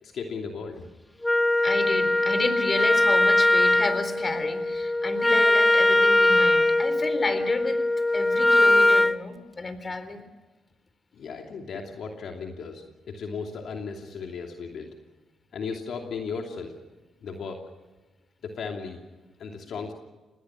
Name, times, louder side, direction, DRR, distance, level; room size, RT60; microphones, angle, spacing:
voice 1, 0.0-0.8 11.1-14.9 15.5-16.7 17.2-17.6 18.4-19.0 19.4-19.9, left 5 dB, 70° left, 2 dB, 2.8 m, -36 dB
Wind instrument woodwind instrument, 1.2-9.2, left 2 dB, 15° left, 0.8 m, -21 dB
voice 2, 1.6-7.8 8.1-10.3, left 3 dB, 35° left, 11 dB, 4.0 m, -31 dB
27.5 x 20.5 x 6.2 m, 1.2 s
supercardioid pair, 60°, 0 cm